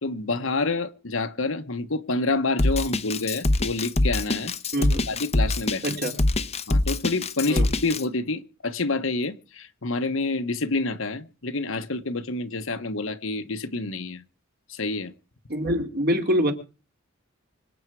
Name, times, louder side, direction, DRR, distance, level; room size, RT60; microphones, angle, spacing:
voice 1, 0.0-4.5 5.1-6.0 6.7-14.2 14.7-15.1, left 3 dB, 70° left, 1.2 m, -28 dB
Drum kit, 2.6-8.0, left 2 dB, 30° left, 0.8 m, -23 dB
voice 2, 4.7-5.1 5.8-6.1 7.5-7.7 15.5-16.5, equal, 50° right, 2.9 m, -25 dB
25.5 x 8.8 x 4.7 m
head